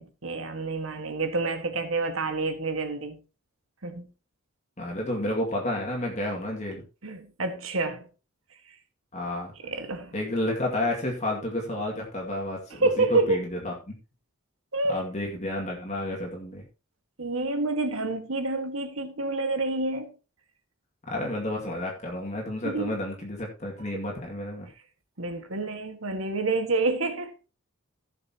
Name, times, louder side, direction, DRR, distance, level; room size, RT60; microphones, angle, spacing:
voice 1, 0.0-3.2 3.8-4.1 7.0-8.1 9.6-10.1 12.7-13.4 14.7-15.0 17.2-20.1 22.6-23.0 25.2-27.3, right 3 dB, 70° right, 1.6 m, -28 dB
voice 2, 4.8-6.8 9.1-9.5 10.1-14.0 14.9-16.6 21.1-24.7, left 1 dB, 35° left, 2.1 m, -31 dB
16.5 x 6.7 x 2.9 m
head